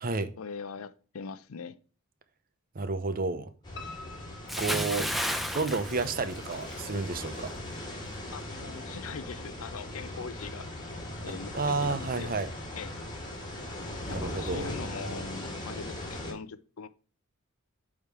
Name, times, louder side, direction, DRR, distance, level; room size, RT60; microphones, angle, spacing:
voice 1, 0.4-1.8 8.3-10.9 11.2-12.3 12.7-12.9 14.1-16.9, left 5 dB, 75° left, 0.6 m, -41 dB
voice 2, 2.7-3.5 4.6-5.1 5.5-7.5 11.5-12.5 14.1-14.7, right 3 dB, 45° right, 0.7 m, -31 dB
sound 1, 3.6-16.3, left 1 dB, 20° left, 1.8 m, -39 dB
Piano, 3.8-5.7 6.1-7.0 7.3-7.4 7.8-7.9 8.2-8.3, left 3 dB, 55° left, 1.5 m, -48 dB
Bathtub (filling or washing) / Splash splatter, 4.5-6.9 7.2-7.5, equal, ahead, 0.6 m, -32 dB
8.7 x 3.6 x 4.7 m
head